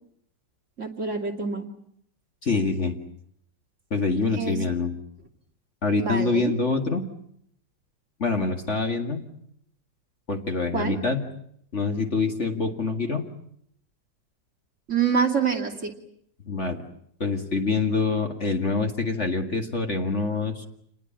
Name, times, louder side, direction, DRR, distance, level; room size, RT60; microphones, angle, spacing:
voice 1, 0.8-1.7 4.3-4.6 6.0-6.5 10.7-11.0 14.9-15.9, right 6 dB, 40° right, 1 dB, 2.9 m, -26 dB
voice 2, 2.4-3.0 3.9-4.9 5.8-7.0 8.2-9.2 10.3-11.2 11.7-13.2 16.5-16.8 17.2-20.7, left 4 dB, 40° left, 5 dB, 2.3 m, -25 dB
28.0 x 20.0 x 8.9 m, 0.70 s
omnidirectional pair, 2.0 m